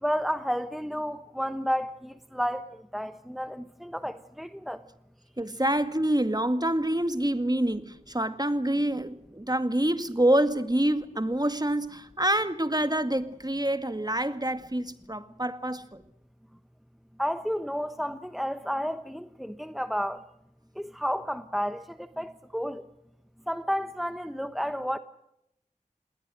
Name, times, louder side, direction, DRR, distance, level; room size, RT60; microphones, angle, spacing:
voice 1, 0.0-4.8 17.2-20.2 20.8-22.9 23.5-25.0, equal, ahead, 1.0 m, -31 dB
voice 2, 5.4-15.9, right 1 dB, 30° right, 2.1 m, -26 dB
28.0 x 20.5 x 6.4 m
wide cardioid pair, 40°, 14 cm